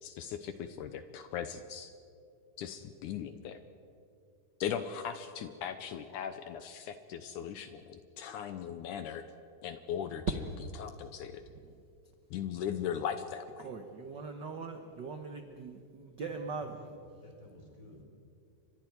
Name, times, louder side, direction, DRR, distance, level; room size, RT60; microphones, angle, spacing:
voice 1, 0.0-1.9 2.6-3.6 4.6-9.3 9.6-10.4 10.8-11.4 12.3-13.7, left 8 dB, 75° left, 9 dB, 2.2 m, -38 dB
voice 2, 13.6-16.8, right 4 dB, 75° right, 5 dB, 1.0 m, -41 dB
voice 3, 16.2-18.0, left 1 dB, 25° left, 1 dB, 4.1 m, -54 dB
30.0 x 25.5 x 4.7 m, 2.5 s
omnidirectional pair, 3.8 m